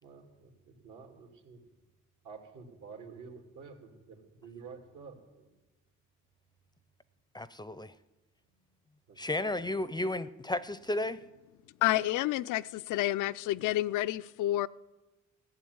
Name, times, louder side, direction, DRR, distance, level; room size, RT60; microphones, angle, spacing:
voice 1, 0.0-1.8 2.2-5.6 8.5-8.6 9.1-9.5, right 5 dB, 75° right, 2.6 m, -50 dB
voice 2, 7.3-7.9 9.2-11.2, left 1 dB, 15° left, 0.5 m, -33 dB
voice 3, 11.8-14.7, left 15 dB, 90° left, 0.5 m, -29 dB
15.0 x 7.0 x 9.4 m
cardioid pair, 90°, 30 cm